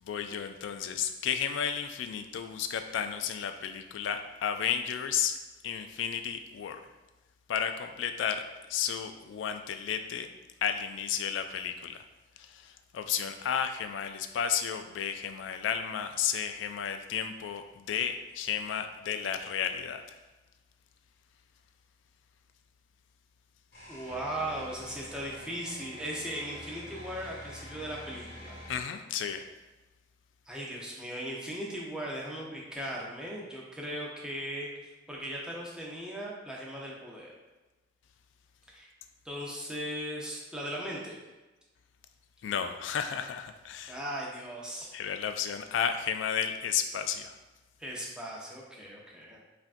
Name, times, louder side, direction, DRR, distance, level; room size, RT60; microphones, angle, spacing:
voice 1, 0.0-5.4 5.6-6.8 7.5-8.4 8.7-10.3 10.6-12.1 12.4-20.2 28.7-29.5 42.4-44.0 44.9-47.4, left 8 dB, 85° left, 8 dB, 0.3 m, -33 dB
sound 1, 23.7-28.8, left 1 dB, 55° left, 1.4 m, -47 dB
voice 2, 23.9-28.6 30.5-37.3 38.7-38.9 39.2-41.2 43.9-44.9 47.8-49.4, right 1 dB, 5° right, -4 dB, 0.6 m, -38 dB
5.6 x 2.5 x 2.5 m, 1.1 s
head